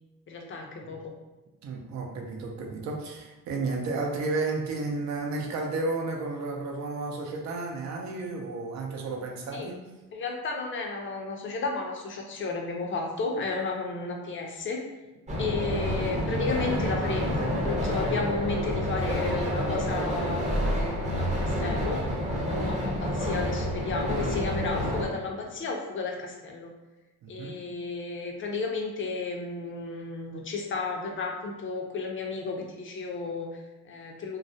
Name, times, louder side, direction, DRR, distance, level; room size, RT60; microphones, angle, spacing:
voice 1, 0.3-1.1 9.5-9.7 10.1-14.8 15.4-22.0 22.5-26.7 27.3-34.4, left 3 dB, 40° left, 1 dB, 0.5 m, -33 dB
voice 2, 1.6-9.8 27.2-27.6, right 3 dB, 65° right, 1 dB, 0.6 m, -32 dB
sound 1, 15.3-25.0, equal, 25° right, 0.6 m, -28 dB
2.3 x 2.0 x 2.6 m, 1.1 s
cardioid pair, 90°, 30 cm